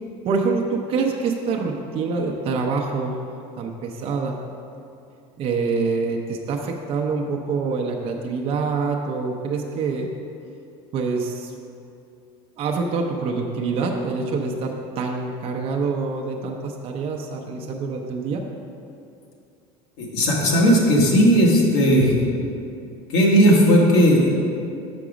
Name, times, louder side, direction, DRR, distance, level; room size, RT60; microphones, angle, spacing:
voice 1, 0.2-3.2 3.5-4.4 5.4-10.1 10.9-11.5 12.6-18.4, right 4 dB, 45° right, 1 dB, 0.6 m, -25 dB
voice 2, 20.0-22.1 23.1-24.3, equal, 80° left, -2 dB, 1.6 m, -16 dB
6.1 x 6.0 x 5.0 m, 2.5 s
supercardioid pair, 115°, 14 cm